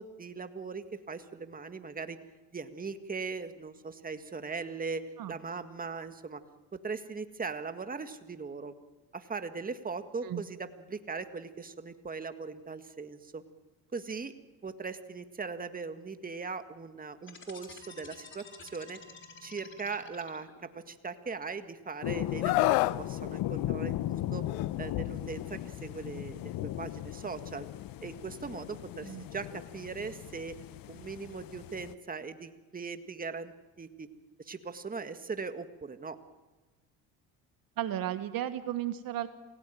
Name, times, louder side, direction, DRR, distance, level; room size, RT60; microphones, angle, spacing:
voice 1, 0.0-2.2 2.5-6.4 6.7-8.7 9.1-13.4 13.9-14.3 14.6-19.0 19.4-24.4 24.8-27.7 28.0-30.5 30.9-34.1 34.4-36.2, right 4 dB, 20° right, 9 dB, 1.8 m, -39 dB
sound 1, 17.2-20.8, left 4 dB, 30° left, 4.1 m, -50 dB
sound 2, 22.0-31.9, left 14 dB, 55° left, 1.0 m, -37 dB
Screaming, 22.4-23.0 24.5-24.7, left 20 dB, 85° left, 0.7 m, -26 dB
voice 2, 37.8-39.3, right 12 dB, 55° right, 11 dB, 1.4 m, -34 dB
28.0 x 17.0 x 9.1 m, 1.2 s
supercardioid pair, 85°, 40 cm